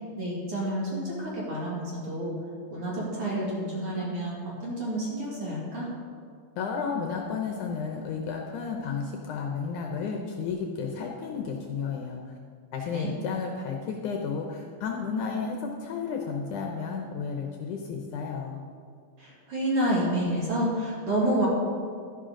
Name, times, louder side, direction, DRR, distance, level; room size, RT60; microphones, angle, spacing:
voice 1, 0.2-2.3 2.7-5.9 12.8-13.1 19.2-21.5, right 1 dB, 45° right, -5 dB, 2.8 m, -29 dB
voice 2, 6.6-12.2 12.7-18.6, left 5 dB, 75° left, 2 dB, 2.0 m, -32 dB
12.0 x 11.0 x 3.8 m, 2.2 s
omnidirectional pair, 4.1 m